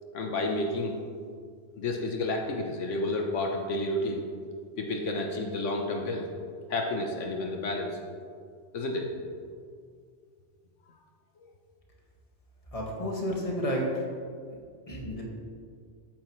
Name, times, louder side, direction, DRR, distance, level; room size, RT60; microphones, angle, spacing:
voice 1, 0.1-1.0 1.8-4.2 4.8-6.3 6.7-8.0 8.7-9.1, left 2 dB, 85° left, 2 dB, 1.3 m, -30 dB
voice 2, 12.7-14.0 14.9-15.2, equal, 30° left, -2 dB, 1.8 m, -31 dB
13.5 x 9.1 x 3.2 m, 2.1 s
omnidirectional pair, 1.2 m